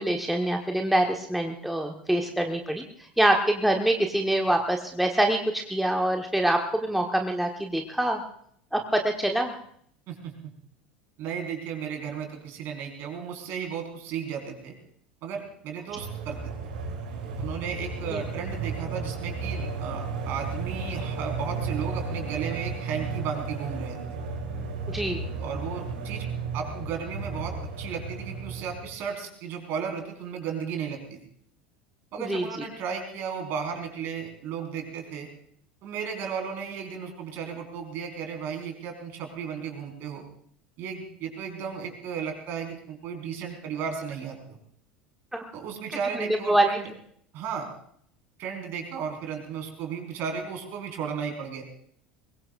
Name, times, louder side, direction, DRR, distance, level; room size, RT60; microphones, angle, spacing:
voice 1, 0.0-2.8 3.2-8.2 8.7-9.6 18.1-18.2 24.9-25.2 32.2-32.4 45.3-45.5 46.1-46.7, right 1 dB, ahead, 3 dB, 1.4 m, -25 dB
voice 2, 11.2-14.7 15.2-16.5 17.4-24.2 25.4-26.3 26.5-31.2 32.1-35.3 35.8-40.2 40.8-44.6 45.5-46.9 47.3-47.7 48.4-51.6, right 7 dB, 45° right, 2 dB, 4.7 m, -34 dB
sound 1, 15.9-29.0, right 4 dB, 65° right, 3.4 m, -33 dB
23.0 x 22.0 x 2.6 m, 0.64 s
figure-of-eight pair, 75°, 5 cm